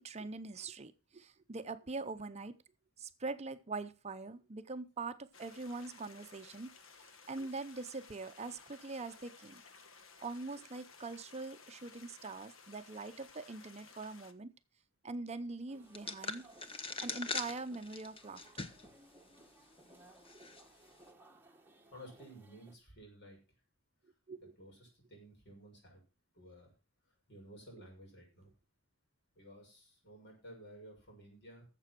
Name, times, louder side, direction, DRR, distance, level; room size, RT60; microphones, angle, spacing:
voice 1, 0.0-2.6 3.0-6.7 7.3-9.6 10.2-14.5 15.0-16.4 17.0-18.6 24.3-24.5, right 3 dB, 35° right, 10 dB, 0.6 m, -43 dB
sound 1, 5.3-14.3, left 5 dB, 75° left, 1.2 m, -58 dB
sound 2, 15.7-22.8, right 2 dB, 10° right, 1.4 m, -61 dB
sound 3, 15.9-18.9 19.3-19.4 20.3-20.6, left 4 dB, 30° left, 1.1 m, -41 dB
voice 2, 21.9-23.4 24.4-26.0 26.3-26.7 27.3-28.5 29.3-31.7, equal, 60° left, 0 dB, 6.3 m, -54 dB
11.5 x 7.6 x 6.0 m, 0.33 s
head